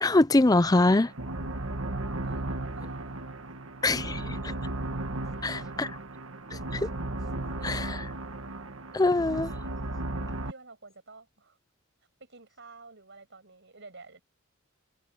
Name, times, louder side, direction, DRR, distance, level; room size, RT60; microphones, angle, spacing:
voice 1, 0.0-1.1 3.8-4.5 5.4-5.9 6.7-6.9 7.6-8.1 8.9-9.5, left 2 dB, 20° left, 0.5 m, -24 dB
sound 1, 0.5-10.5, right 2 dB, 75° right, 1.8 m, -35 dB
voice 2, 1.1-3.6 5.2-6.0 10.5-11.6 12.2-14.2, right 3 dB, 60° right, 7.8 m, -51 dB
head